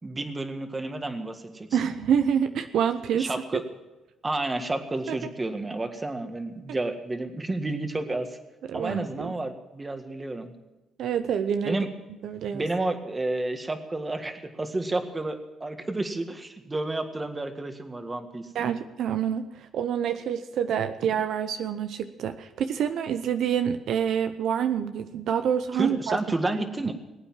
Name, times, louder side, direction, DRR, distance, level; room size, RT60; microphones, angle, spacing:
voice 1, 0.0-1.8 3.1-3.6 4.2-8.3 8.7-10.5 11.6-11.9 12.5-18.7 25.7-26.9, right 2 dB, 20° right, 7 dB, 1.7 m, -31 dB
voice 2, 1.7-3.6 5.1-5.2 8.7-9.3 11.0-11.8 12.2-12.6 18.5-26.2 26.5-26.6, right 8 dB, 75° right, 9 dB, 0.8 m, -27 dB
20.5 x 8.7 x 7.4 m, 1.0 s
cardioid pair, 90°, 0 cm